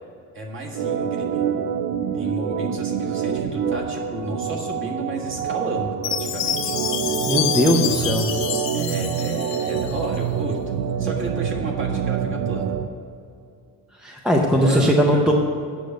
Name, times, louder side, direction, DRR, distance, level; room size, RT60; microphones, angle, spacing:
voice 1, 0.3-1.4 2.1-6.7 8.7-10.6 11.0-12.7 14.6-15.3, right 2 dB, 35° right, 0 dB, 1.7 m, -32 dB
Organ, 0.7-12.9, right 8 dB, 70° right, 0.7 m, -26 dB
Chime, 6.0-10.2, left 11 dB, 70° left, 1.1 m, -28 dB
voice 2, 7.3-8.3 14.0-15.3, equal, ahead, 0 dB, 0.5 m, -19 dB
8.3 x 6.4 x 8.1 m, 2.5 s
cardioid pair, 165°, 36 cm